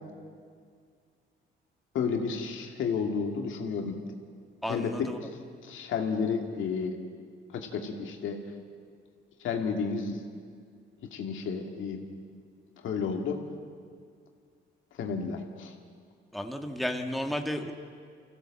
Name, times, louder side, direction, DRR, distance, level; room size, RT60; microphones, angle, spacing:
voice 1, 1.9-4.0 4.7-5.1 5.6-7.0 7.5-8.4 9.4-10.2 11.1-12.2 12.8-13.4 15.0-15.7, left 5 dB, 80° left, 3 dB, 2.3 m, -31 dB
voice 2, 4.6-5.2 16.3-17.7, left 1 dB, ahead, 4 dB, 1.6 m, -33 dB
25.0 x 16.0 x 7.6 m, 2.1 s
cardioid pair, 90°, 20 cm